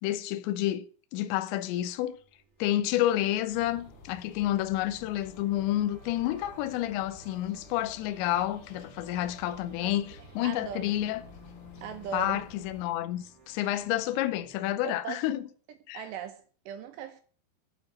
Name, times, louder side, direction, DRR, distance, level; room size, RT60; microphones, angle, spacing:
voice 1, 0.0-0.8 1.1-2.2 2.6-11.2 12.1-15.4 15.9-16.0, left 13 dB, 80° left, 2.8 m, -29 dB
sound 1, 2.0-15.0, left 1 dB, 40° right, 0.7 m, -56 dB
sound 2, 3.5-12.8, left 3 dB, 65° left, 3.7 m, -52 dB
voice 2, 10.4-10.8 11.8-12.4 14.8-15.3 15.9-17.2, right 9 dB, 80° right, 2.5 m, -38 dB
11.5 x 4.5 x 7.5 m
omnidirectional pair, 5.7 m